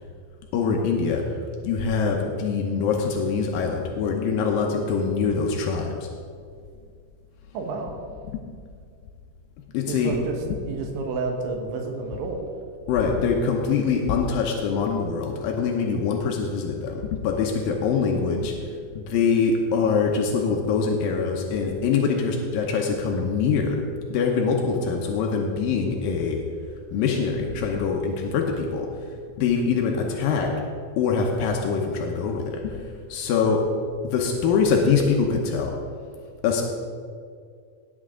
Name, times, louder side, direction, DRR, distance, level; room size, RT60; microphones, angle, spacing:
voice 1, 0.5-1.3 1.6-6.1 8.3-8.4 9.7-10.2 12.9-18.6 19.0-23.8 24.1-26.4 26.9-29.0 29.4-30.6 31.0-33.7 34.0-35.8 36.4-36.6, left 5 dB, 90° left, 1 dB, 2.0 m, -24 dB
voice 2, 7.5-8.0 9.9-10.2 10.7-12.4, right 4 dB, 80° right, 2 dB, 3.7 m, -30 dB
17.5 x 9.2 x 3.7 m, 2.2 s
omnidirectional pair, 5.4 m